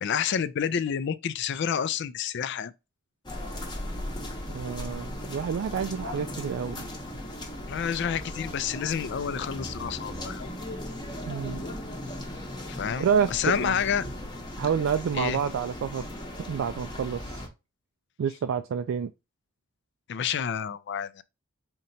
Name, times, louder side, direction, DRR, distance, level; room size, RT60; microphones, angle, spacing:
voice 1, 0.0-2.7 7.6-10.5 12.7-14.0 15.1-15.4 20.1-21.2, left 7 dB, 60° left, 0.4 m, -29 dB
sound 1, 3.3-17.5, left 1 dB, 20° left, 0.8 m, -37 dB
voice 2, 4.5-6.9 11.3-11.6 13.0-13.8 14.6-16.1 16.5-17.5 18.2-19.1, right 7 dB, 70° right, 0.3 m, -28 dB
4.4 x 2.8 x 2.6 m
head